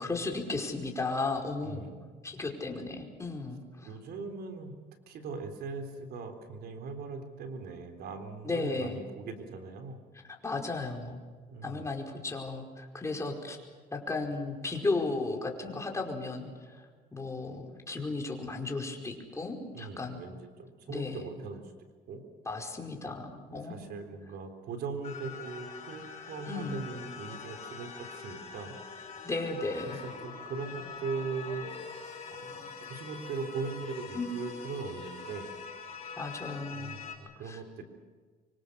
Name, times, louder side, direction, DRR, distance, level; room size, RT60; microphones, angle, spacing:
voice 1, 0.0-1.9 2.2-3.9 8.4-9.0 10.4-11.2 11.6-13.6 13.9-16.8 17.1-20.2 20.9-21.3 22.4-23.9 26.5-26.8 29.2-30.0 34.1-34.3 36.2-36.9 37.4-37.8, left 3 dB, 15° left, 1 dB, 4.9 m, -35 dB
voice 2, 1.6-2.1 3.8-4.8 5.1-10.0 11.5-11.9 19.7-21.6 22.1-22.2 23.5-28.8 29.9-32.0 32.3-35.5 36.7-37.8, right 4 dB, 70° right, 6 dB, 3.8 m, -40 dB
sound 1, 25.0-37.2, left 5 dB, 40° left, 5.9 m, -44 dB
25.5 x 25.0 x 6.8 m, 1.6 s
cardioid pair, 110°, 17 cm